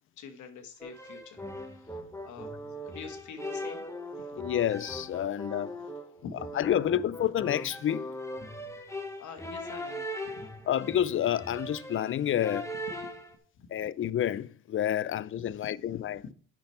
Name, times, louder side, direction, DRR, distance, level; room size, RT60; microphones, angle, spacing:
voice 1, 0.2-2.5 2.8-3.9 6.2-6.5 9.2-10.1 13.6-13.7 15.5-15.7 16.0-16.3, left 6 dB, 75° left, 1.3 m, -46 dB
sound 1, 0.8-13.4, left 1 dB, 10° left, 1.3 m, -40 dB
voice 2, 4.3-5.7 6.6-8.1 10.7-12.7 13.7-16.2, left 10 dB, 45° left, 0.5 m, -29 dB
8.9 x 6.0 x 4.4 m
cardioid pair, 90°, 30 cm